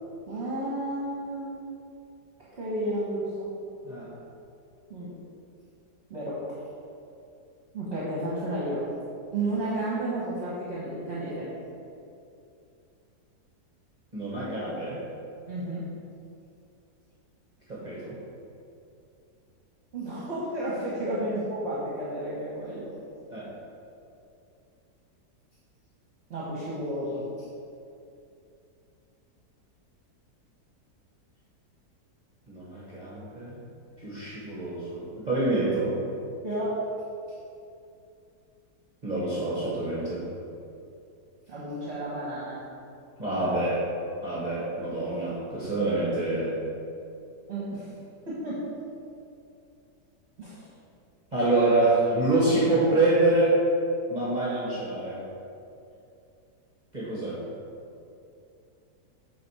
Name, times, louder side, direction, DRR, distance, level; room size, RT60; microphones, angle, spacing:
voice 1, 0.3-1.5 2.5-3.5 4.9-5.1 6.1-6.6 7.7-8.8 9.3-11.5 15.5-15.8 19.9-22.9 26.3-27.5 36.4-36.8 41.5-42.6 47.5-47.9 48.3-48.7 50.4-50.7, right 1 dB, 45° right, -8 dB, 1.5 m, -32 dB
voice 2, 14.1-15.0 17.7-18.2 23.3-23.5 32.5-33.6 34.0-36.0 39.0-40.3 43.2-43.8 44.2-46.6 51.3-53.6 54.1-55.2 56.9-57.4, right 2 dB, 30° right, -8 dB, 1.4 m, -26 dB
8.4 x 4.0 x 4.8 m, 2.6 s
omnidirectional pair, 1.8 m